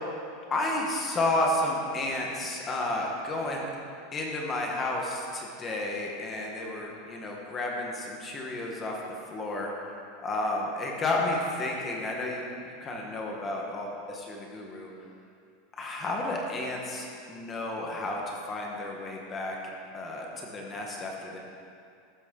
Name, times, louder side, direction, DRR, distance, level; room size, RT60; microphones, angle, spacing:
voice 1, 0.5-3.7 4.1-9.0 9.3-9.7 10.2-14.9 15.8-19.6 19.9-21.4, left 2 dB, 15° left, 0 dB, 1.2 m, -32 dB
14.0 x 12.5 x 3.7 m, 2.4 s
supercardioid pair, 180°, 0 cm